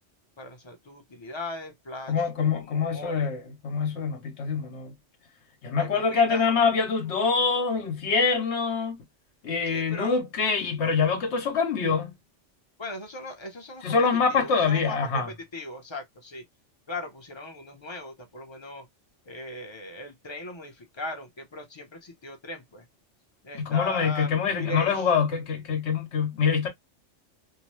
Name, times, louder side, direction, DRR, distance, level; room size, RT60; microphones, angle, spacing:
voice 1, 0.4-3.3 5.7-6.5 9.7-10.2 12.8-14.0 14.3-16.4 16.9-18.9 19.3-22.9 23.4-25.1, left 2 dB, 30° left, 0.5 m, -39 dB
voice 2, 2.1-4.9 5.6-9.0 9.4-12.1 13.8-15.3 23.5-26.7, left 5 dB, 65° left, 1.1 m, -25 dB
2.7 x 2.0 x 2.9 m
omnidirectional pair, 1.3 m